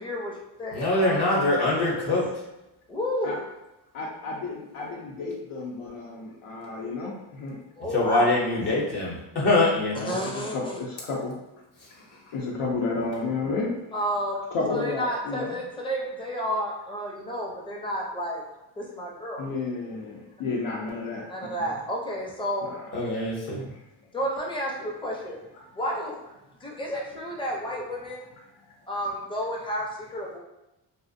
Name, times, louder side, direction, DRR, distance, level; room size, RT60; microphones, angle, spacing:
voice 1, 0.0-1.2 1.9-2.1 2.9-3.5 7.8-8.4 10.0-10.7 13.9-14.4 14.7-18.4 18.8-19.5 21.2-22.7 24.1-25.4 25.7-26.2 26.6-28.2 28.9-30.4, equal, 10° left, -2 dB, 0.5 m, -31 dB
voice 2, 0.7-2.3 7.9-10.1 22.9-23.6, left 2 dB, 50° left, -4 dB, 0.7 m, -24 dB
voice 3, 3.9-7.6 10.5-11.3 12.3-13.8 14.5-15.5 19.4-21.2 22.6-22.7, left 3 dB, 85° left, -4 dB, 0.7 m, -31 dB
2.4 x 2.1 x 2.5 m, 0.96 s
cardioid pair, 95°, 49 cm